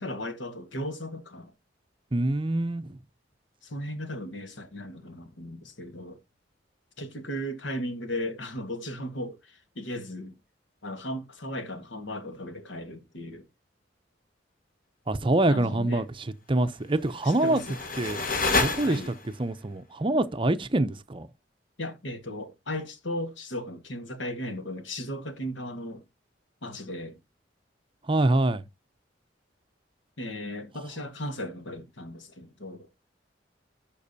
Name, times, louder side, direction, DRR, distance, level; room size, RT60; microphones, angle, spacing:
voice 1, 0.0-1.5 3.6-6.2 7.0-10.4 10.8-13.5 15.5-16.0 17.4-17.8 18.8-19.1 21.8-26.0 26.6-27.2 30.2-32.9, left 1 dB, 80° left, 1.5 m, -36 dB
voice 2, 2.1-3.0 15.1-17.6 18.0-18.2 18.6-21.3 28.1-28.6, right 2 dB, 25° right, 0.6 m, -25 dB
sound 1, 17.0-19.4, left 3 dB, 45° left, 1.6 m, -29 dB
11.5 x 5.4 x 2.7 m
head